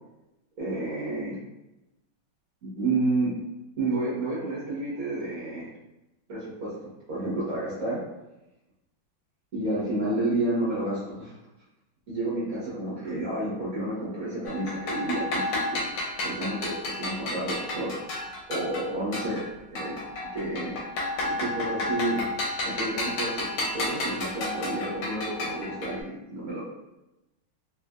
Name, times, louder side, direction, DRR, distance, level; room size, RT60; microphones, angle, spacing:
voice 1, 0.6-1.4 2.6-3.4 3.8-5.7 6.3-6.8 7.1-8.0 9.5-11.3 12.1-15.8 16.2-17.9 18.5-19.4 19.7-20.0 20.3-20.8 21.2-22.3 22.6-26.7, right 2 dB, 50° right, -9 dB, 1.2 m, -30 dB
sound 1, 14.5-19.5 19.8-26.0, left 2 dB, 85° left, 1.5 m, -32 dB
3.4 x 2.5 x 2.2 m, 0.95 s
omnidirectional pair, 2.3 m